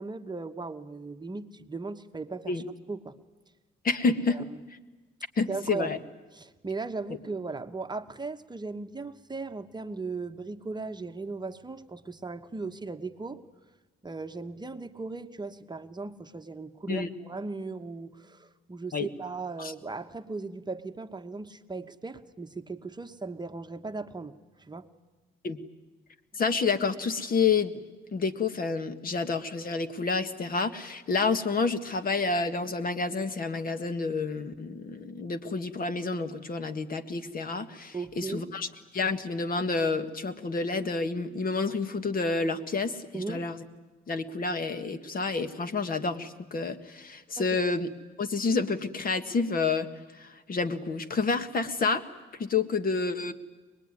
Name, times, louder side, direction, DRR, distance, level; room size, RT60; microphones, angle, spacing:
voice 1, 0.0-2.6 2.9-3.2 4.3-4.6 5.5-5.9 6.3-13.4 14.0-24.9 37.9-38.5 43.1-43.5 47.4-47.5, right 3 dB, 20° right, 7 dB, 1.0 m, -37 dB
voice 2, 3.8-4.4 5.4-6.0 16.9-17.1 18.9-19.1 19.6-19.7 25.4-25.6 26.3-27.7 28.1-38.7 38.9-43.6 44.1-47.9 48.2-49.9 50.1-52.0 52.3-53.3, left 4 dB, 45° left, 10 dB, 1.6 m, -29 dB
24.5 x 20.0 x 9.7 m, 1.2 s
cardioid pair, 90°, 20 cm